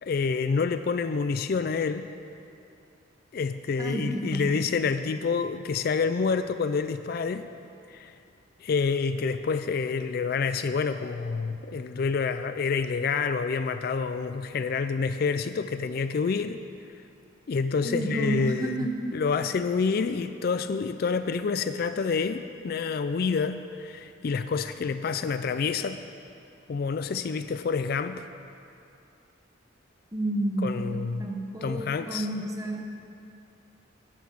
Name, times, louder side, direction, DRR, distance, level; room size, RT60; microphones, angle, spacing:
voice 1, 0.0-2.1 3.3-7.5 7.9-8.2 8.6-16.6 17.5-26.0 26.7-28.3 30.6-31.3 31.6-32.3, left 5 dB, 50° left, 10 dB, 0.3 m, -28 dB
voice 2, 3.8-4.6 17.8-18.9 30.1-32.8, right 1 dB, 15° right, 2 dB, 1.0 m, -31 dB
13.5 x 5.9 x 8.5 m, 2.6 s
head